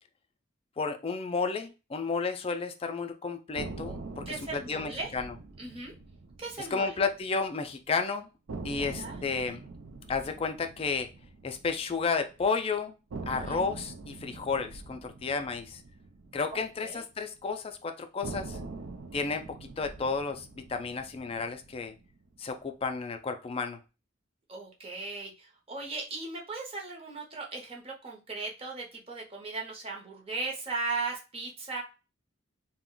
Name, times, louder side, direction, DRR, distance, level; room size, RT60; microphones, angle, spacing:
voice 1, 0.8-5.3 6.6-8.3 8.6-9.6 10.1-11.1 11.4-12.9 13.3-15.8 16.3-18.6 19.1-21.9 22.4-23.8, left 4 dB, 30° left, 7 dB, 0.3 m, -32 dB
sound 1, 3.6-7.6 7.9-8.0 8.5-12.6 13.1-17.5 18.2-22.6, right 3 dB, 70° right, 0.4 m, -44 dB
voice 2, 4.3-5.1 5.6-5.9 6.4-7.0 8.8-9.2 13.3-13.6 16.5-17.0 24.5-31.8, right 3 dB, 30° right, 0 dB, 0.7 m, -37 dB
2.4 x 2.1 x 3.6 m, 0.30 s
head